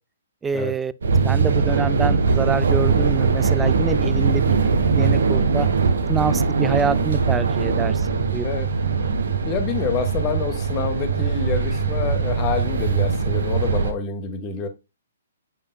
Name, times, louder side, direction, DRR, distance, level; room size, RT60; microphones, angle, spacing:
voice 1, 0.4-0.9 1.2-4.5 4.9-5.7 6.1-8.5, right 5 dB, 10° right, 0.3 m, -26 dB
sound 1, 1.0-13.9, right 5 dB, 65° right, 1.2 m, -21 dB
voice 2, 9.4-14.7, left 6 dB, 25° left, 1.3 m, -27 dB
8.1 x 5.4 x 2.3 m
figure-of-eight pair, 120°, 0 cm